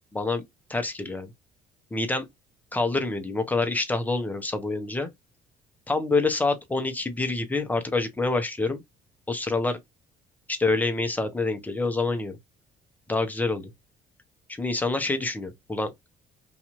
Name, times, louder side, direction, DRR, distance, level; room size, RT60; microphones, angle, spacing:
voice 1, 0.1-0.4 0.7-1.3 1.9-2.3 2.7-5.1 5.9-8.8 9.3-9.8 10.5-12.4 13.1-13.7 14.6-15.9, left 3 dB, 10° left, 0.7 m, -26 dB
2.6 x 2.3 x 3.0 m
cardioid pair, 110°, 17 cm